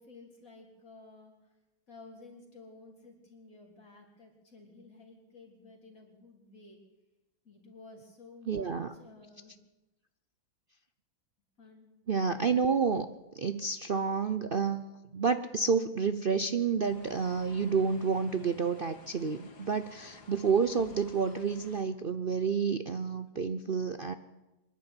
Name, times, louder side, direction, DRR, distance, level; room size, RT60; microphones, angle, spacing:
voice 1, 0.0-1.6 1.9-6.8 7.4-9.5 11.6-11.9, left 3 dB, 45° left, -1 dB, 4.5 m, -53 dB
voice 2, 8.5-8.9 12.1-13.1 13.3-14.8 15.1-24.1, right 5 dB, 70° right, 10 dB, 0.5 m, -29 dB
sound 1, 16.8-21.8, left 3 dB, 80° left, 2.9 m, -53 dB
25.0 x 11.0 x 9.9 m, 1.0 s
omnidirectional pair, 2.0 m